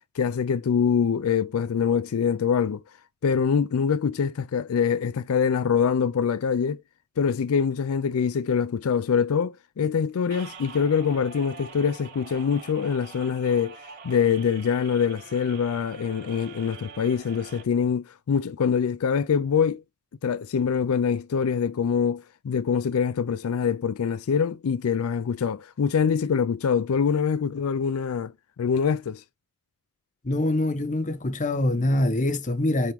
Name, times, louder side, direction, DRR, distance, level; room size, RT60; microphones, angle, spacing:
voice 1, 0.2-2.8 3.2-6.8 7.2-13.8 14.0-19.8 20.2-28.3 28.6-29.2, left 6 dB, 85° left, 0.4 m, -24 dB
sound 1, 10.3-17.6, right 5 dB, 50° right, 3.9 m, -45 dB
voice 2, 30.2-32.9, left 1 dB, 35° left, 0.9 m, -24 dB
9.1 x 3.6 x 3.5 m
head